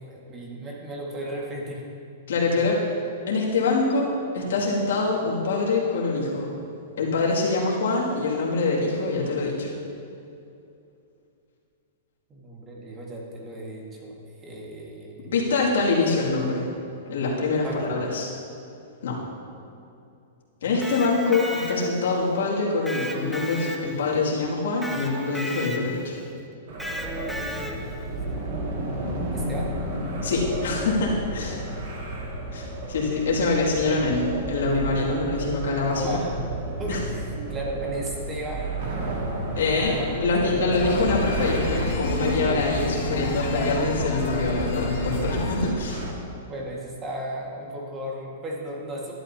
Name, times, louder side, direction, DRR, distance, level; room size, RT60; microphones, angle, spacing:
voice 1, 0.0-1.8 2.5-2.7 12.3-15.3 17.6-17.9 27.7-28.1 28.4-28.5 29.3-29.8 36.0-36.4 36.8-39.3 39.7-40.2 43.6-43.7 45.1-45.4 46.4-49.1, right 1 dB, 20° right, -2 dB, 1.8 m, -35 dB
voice 2, 2.3-2.8 3.3-6.5 7.0-9.7 15.3-16.7 17.1-18.3 19.0-19.2 20.6-26.2 30.2-31.6 32.5-36.2 36.9-37.0 39.5-46.0, left 3 dB, 80° left, -4 dB, 2.4 m, -25 dB
Electric guitar, 20.6-22.2 22.9-24.2 24.8-26.1 26.8-28.0, left 1 dB, ahead, 0.6 m, -34 dB
sound 1, 26.7-46.1, right 1 dB, 60° right, 2.1 m, -32 dB
sound 2, 40.7-45.7, left 2 dB, 55° left, 1.8 m, -29 dB
12.0 x 11.5 x 2.8 m, 2.6 s
hypercardioid pair, 150°, 0 cm